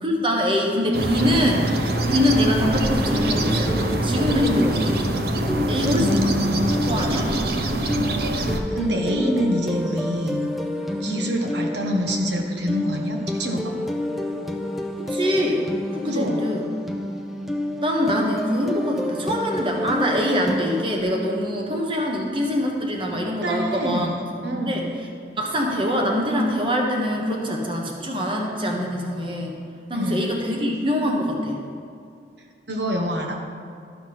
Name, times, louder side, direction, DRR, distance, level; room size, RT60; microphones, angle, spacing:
voice 1, 0.0-1.7 2.1-5.0 5.7-6.3 6.8-7.3 11.1-11.3 15.1-15.6 15.9-16.7 17.8-24.2 24.4-24.9 25.4-29.5 29.9-31.6, equal, 30° right, 0 dB, 1.2 m, -24 dB
sound 1, 0.9-8.6, right 1 dB, 60° right, 0.7 m, -24 dB
sound 2, 2.8-21.0, left 1 dB, ahead, 0.5 m, -29 dB
voice 2, 5.9-6.7 8.7-10.5 11.0-13.7 16.0-16.4 23.4-24.9 29.9-30.3 32.7-33.4, equal, 80° right, 2 dB, 1.1 m, -26 dB
12.5 x 5.9 x 5.9 m, 2.4 s
head